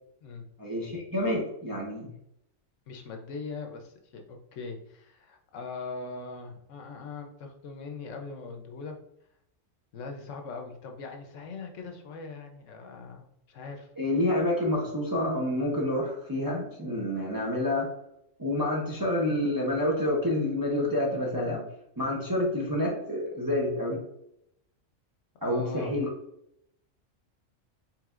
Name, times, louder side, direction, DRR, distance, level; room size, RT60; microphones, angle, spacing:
voice 1, 0.6-2.1 14.0-17.9 18.4-21.6 22.0-24.0 25.4-26.1, left 1 dB, 25° right, -3 dB, 0.6 m, -28 dB
voice 2, 2.9-8.9 9.9-13.9 25.4-25.9, left 4 dB, 75° left, 4 dB, 1.0 m, -41 dB
4.7 x 3.4 x 2.4 m, 0.77 s
omnidirectional pair, 1.3 m